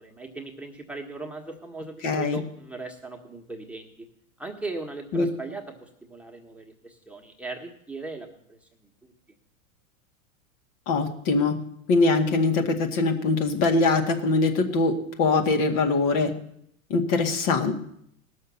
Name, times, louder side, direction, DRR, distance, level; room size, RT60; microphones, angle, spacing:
voice 1, 0.0-4.1 4.4-9.1, right 3 dB, 5° right, 0 dB, 1.7 m, -39 dB
voice 2, 2.0-2.4 5.1-5.3 10.9-11.5 11.9-14.9 15.2-16.3 16.9-17.8, left 3 dB, 55° left, 4 dB, 2.2 m, -22 dB
17.5 x 6.5 x 7.1 m, 0.70 s
hypercardioid pair, 100°, 42 cm